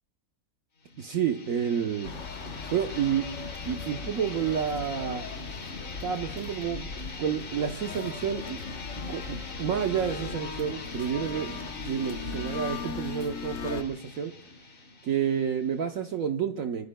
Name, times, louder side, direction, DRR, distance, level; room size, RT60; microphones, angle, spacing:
sound 1, 0.8-16.2, left 3 dB, 40° left, 1.4 m, -42 dB
voice 1, 1.0-2.1 2.7-3.3 3.6-5.2 6.0-6.9 7.2-8.6 9.1-14.3 15.0-16.9, right 8 dB, 65° right, 5 dB, 1.2 m, -29 dB
sound 2, 2.0-13.8, left 5 dB, 55° left, 1.3 m, -39 dB
24.5 x 24.5 x 2.2 m, 0.70 s
omnidirectional pair, 1.6 m